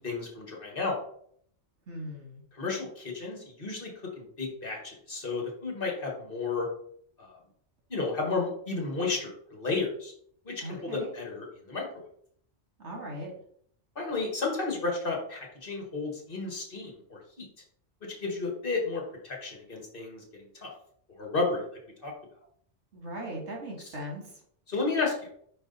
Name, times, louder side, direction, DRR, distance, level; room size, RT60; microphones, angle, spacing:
voice 1, 0.0-1.0 2.5-3.9 4.2-6.7 7.2-7.3 7.9-10.1 10.5-12.0 14.0-17.5 18.2-20.7 21.2-21.6 22.0-22.1 24.7-25.3, left 3 dB, 50° left, 0 dB, 1.7 m, -32 dB
voice 2, 1.9-2.4 10.6-11.1 12.8-13.3 22.9-24.2, equal, 75° right, 0 dB, 2.0 m, -38 dB
5.4 x 4.7 x 4.0 m, 0.64 s
omnidirectional pair, 1.2 m